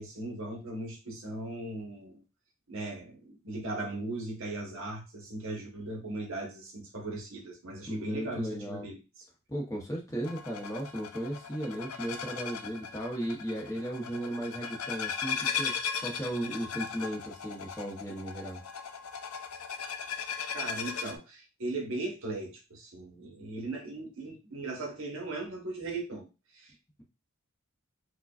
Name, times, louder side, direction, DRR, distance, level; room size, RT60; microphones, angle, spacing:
voice 1, 0.0-2.2 2.7-9.0 20.5-26.3 26.5-26.7, right 2 dB, 65° right, 0 dB, 1.2 m, -38 dB
voice 2, 7.9-8.9 9.5-15.7 16.0-18.6, right 1 dB, 15° left, -2 dB, 0.8 m, -36 dB
sound 1, 10.2-21.2, left 6 dB, 85° left, 0.5 m, -37 dB
4.7 x 2.3 x 2.4 m, 0.29 s
head